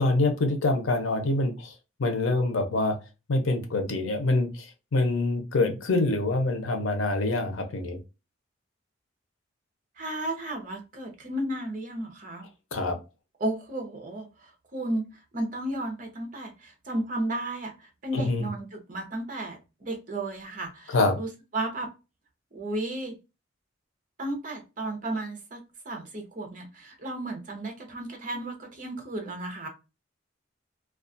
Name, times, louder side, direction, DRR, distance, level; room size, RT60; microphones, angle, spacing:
voice 1, 0.0-1.7 2.0-3.0 3.3-4.7 4.9-8.0 12.7-13.0 18.1-18.5 20.9-21.2, left 2 dB, 85° left, 0.7 m, -25 dB
voice 2, 10.0-12.5 13.4-15.0 15.3-21.9 22.5-23.2 24.2-25.6 25.8-29.7, right 1 dB, 40° right, 0.7 m, -33 dB
2.3 x 2.3 x 2.5 m
head